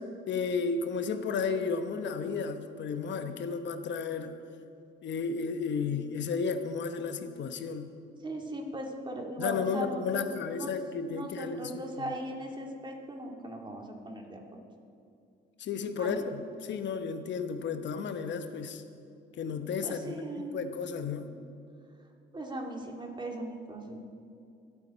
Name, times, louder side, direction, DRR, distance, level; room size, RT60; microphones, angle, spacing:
voice 1, 0.3-4.4 5.0-7.9 9.4-12.1 15.6-18.8 19.4-21.3, left 5 dB, 65° left, 8 dB, 1.0 m, -33 dB
voice 2, 8.2-10.7 11.1-14.6 15.9-16.2 19.8-20.6 21.2-21.3 22.3-24.0, right 1 dB, 25° right, 0 dB, 2.4 m, -39 dB
23.5 x 8.6 x 4.3 m, 2.5 s
cardioid pair, 90°, 20 cm